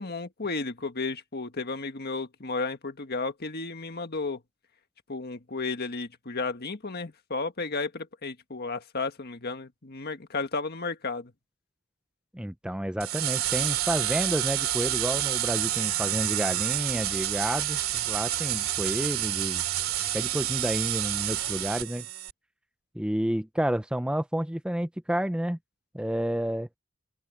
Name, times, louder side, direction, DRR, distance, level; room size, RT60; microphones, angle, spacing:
voice 1, 0.0-4.4 5.1-11.3, left 3 dB, 50° left, 1.6 m, -33 dB
voice 2, 12.3-19.6 20.1-22.1 22.9-25.6 25.9-26.7, right 1 dB, 5° right, 0.5 m, -30 dB
sound 1, 13.0-22.3, right 13 dB, 80° right, 2.4 m, -29 dB
open air
head